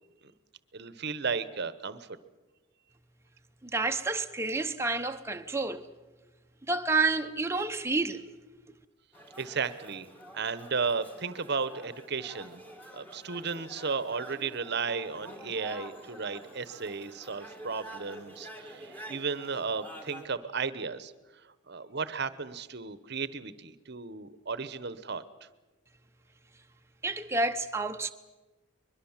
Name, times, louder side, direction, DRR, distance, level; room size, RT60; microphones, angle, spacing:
voice 1, 0.7-2.1 9.4-10.1 10.3-12.6 12.9-21.1 21.7-25.2, right 5 dB, 50° right, 1.0 m, -34 dB
voice 2, 3.7-5.9 6.7-8.2 27.0-28.1, right 3 dB, 10° right, 0.9 m, -29 dB
sound 1, 9.1-20.3, right 1 dB, 10° left, 2.0 m, -48 dB
22.5 x 22.0 x 7.3 m
head